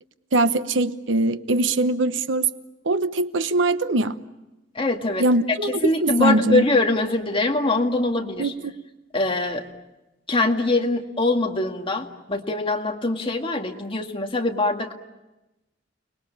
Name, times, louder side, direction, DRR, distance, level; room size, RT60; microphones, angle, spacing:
voice 1, 0.3-2.5 2.8-4.2 5.2-6.6 8.4-8.7, right 2 dB, 85° right, 12 dB, 1.0 m, -22 dB
voice 2, 4.8-5.3 5.6-8.5 9.1-9.7 10.3-14.9, left 2 dB, 30° left, 3 dB, 1.9 m, -23 dB
30.0 x 20.5 x 8.6 m, 1.0 s
head